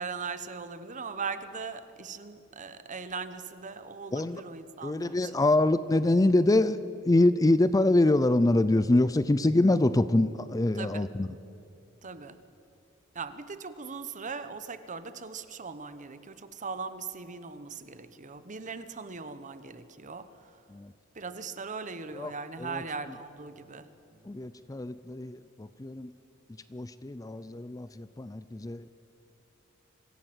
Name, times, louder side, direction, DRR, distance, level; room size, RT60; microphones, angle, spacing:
voice 1, 0.0-5.2 10.8-11.0 12.0-12.4 13.2-16.3 16.6-20.3 21.2-23.8, right 5 dB, 40° right, 12 dB, 1.0 m, -39 dB
voice 2, 4.8-6.8 7.1-11.3 20.8-20.9 22.1-22.3 22.6-22.8 24.3-25.4 25.8-26.1 26.7-28.9, left 2 dB, 15° left, 14 dB, 0.4 m, -25 dB
25.0 x 16.0 x 7.8 m, 2.7 s
head